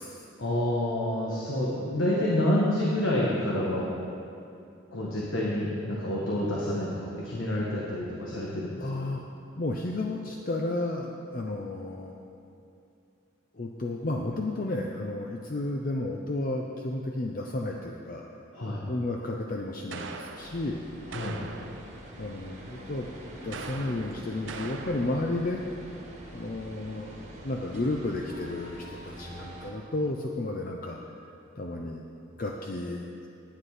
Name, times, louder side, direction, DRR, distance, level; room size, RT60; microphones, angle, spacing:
voice 1, 0.4-3.9 4.9-8.8 18.5-18.8 21.1-21.4, left 1 dB, 90° left, -4 dB, 1.4 m, -28 dB
voice 2, 8.8-9.2 9.6-12.2 13.5-18.3 18.9-20.9 22.2-23.1 23.4-25.6 26.3-31.0 31.6-32.0 32.4-33.1, left 2 dB, 45° left, 0 dB, 0.6 m, -32 dB
sound 1, 19.9-20.7 21.1-21.9 23.5-25.3, right 4 dB, 75° right, 0.7 m, -41 dB
sound 2, 20.4-29.7, equal, 35° right, 1.5 m, -45 dB
10.5 x 9.5 x 4.9 m, 2.6 s
head